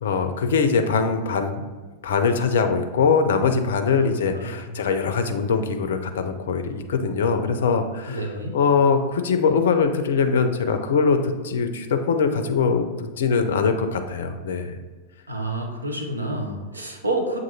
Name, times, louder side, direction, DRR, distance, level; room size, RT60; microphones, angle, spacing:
voice 1, 0.0-1.6 2.0-8.3 8.5-14.7, left 5 dB, 60° left, 7 dB, 0.4 m, -22 dB
voice 2, 4.3-4.7 8.1-8.6 15.3-17.4, right 1 dB, 80° right, 2 dB, 0.6 m, -29 dB
7.3 x 2.5 x 2.7 m, 1.3 s
figure-of-eight pair, 90°, 0 cm